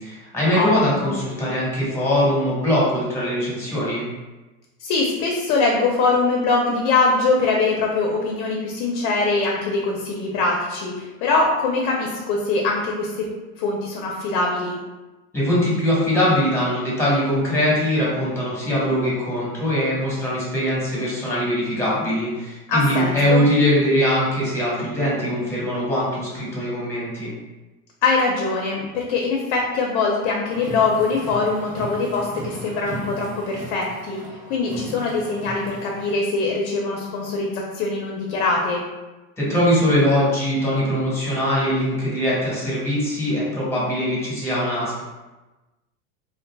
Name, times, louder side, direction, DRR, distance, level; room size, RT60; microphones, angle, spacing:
voice 1, 0.0-4.0 15.3-27.3 39.4-45.0, equal, 5° left, -7 dB, 1.0 m, -21 dB
voice 2, 4.8-13.3 13.5-14.8 22.7-23.4 28.0-34.2 34.5-38.8, left 3 dB, 55° left, 0 dB, 0.6 m, -22 dB
Car, 30.5-36.2, right 2 dB, 85° right, 1.0 m, -37 dB
2.6 x 2.5 x 2.2 m, 1.1 s
supercardioid pair, 120°, 41 cm